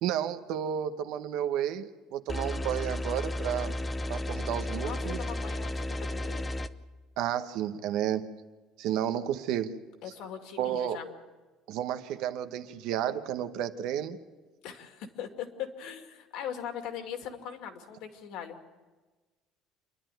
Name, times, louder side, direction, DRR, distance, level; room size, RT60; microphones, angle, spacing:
voice 1, 0.0-3.7 4.1-5.2 7.2-8.2 8.8-9.7 10.6-11.0 11.7-14.2, right 10 dB, 65° right, 9 dB, 1.1 m, -31 dB
sound 1, 2.3-6.7, left 1 dB, 10° left, 0.6 m, -33 dB
voice 2, 4.8-6.4 10.0-11.1 14.6-18.6, left 8 dB, 60° left, 5 dB, 2.3 m, -40 dB
28.0 x 11.5 x 9.2 m, 1.3 s
cardioid pair, 165°, 0 cm